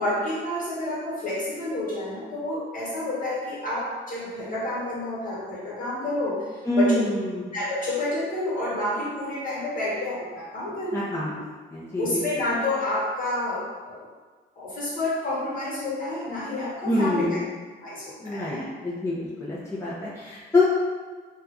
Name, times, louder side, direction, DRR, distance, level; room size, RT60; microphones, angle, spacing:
voice 1, 0.0-7.0 7.5-11.0 12.0-14.1 14.6-17.4 17.8-18.7 19.1-19.2, left 1 dB, 45° left, -7 dB, 1.3 m, -29 dB
voice 2, 6.6-7.4 10.9-11.3 11.7-12.2 12.5-12.6 16.8-17.5 18.2-18.6 18.8-20.6, left 2 dB, 15° left, -8 dB, 0.6 m, -25 dB
2.6 x 2.3 x 3.5 m, 1.4 s
cardioid pair, 90°, 20 cm